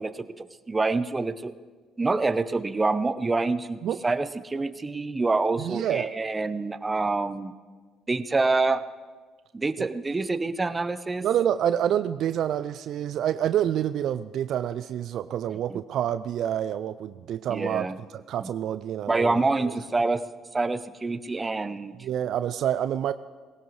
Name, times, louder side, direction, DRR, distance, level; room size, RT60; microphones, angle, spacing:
voice 1, 0.0-1.5 2.0-7.5 8.1-8.8 9.5-11.3 15.7-15.8 17.5-18.0 18.4-18.5 19.1-20.2 20.5-22.1, right 3 dB, 25° right, 13 dB, 0.8 m, -26 dB
voice 2, 5.6-6.1 9.8-9.9 11.2-17.9 18.1-19.7 22.0-23.1, right 10 dB, 60° right, 13 dB, 0.3 m, -27 dB
20.0 x 18.0 x 3.2 m, 1.4 s
hypercardioid pair, 55°, 0 cm